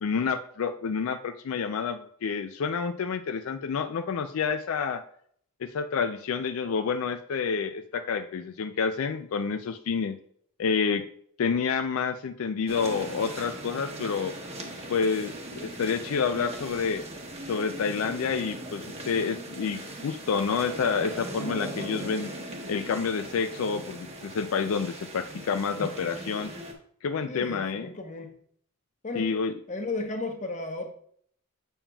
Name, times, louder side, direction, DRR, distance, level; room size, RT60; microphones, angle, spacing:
voice 1, 0.0-5.0 5.6-10.2 10.6-11.0 11.4-14.4 14.9-17.0 17.5-22.3 22.7-26.5 27.0-27.9 29.2-29.5, left 5 dB, 80° left, 8 dB, 0.4 m, -29 dB
sound 1, 12.7-26.7, right 1 dB, 30° right, 1.0 m, -39 dB
voice 2, 27.3-28.4 29.0-29.3 29.7-30.9, left 3 dB, 35° left, 4 dB, 0.9 m, -34 dB
7.2 x 7.0 x 2.3 m, 0.63 s
head